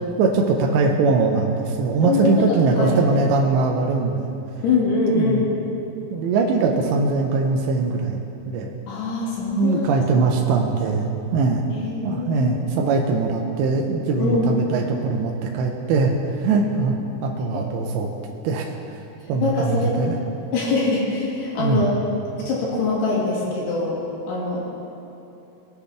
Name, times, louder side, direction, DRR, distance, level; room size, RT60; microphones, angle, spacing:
voice 1, 0.2-4.3 5.1-5.5 6.1-8.2 8.5-8.7 9.6-11.6 12.0-18.1 18.4-18.7 19.3-20.2 21.6-21.8, right 4 dB, 80° right, 1 dB, 2.9 m, -21 dB
voice 2, 2.0-2.5 2.8-3.0 4.6-5.4 8.9-9.8 11.7-12.6 14.2-14.6 17.5-17.7 19.2-19.9 20.5-22.0 22.5-24.0 24.3-24.7, left 3 dB, 70° left, -5 dB, 4.0 m, -23 dB
20.5 x 8.3 x 3.4 m, 2.9 s
omnidirectional pair, 5.2 m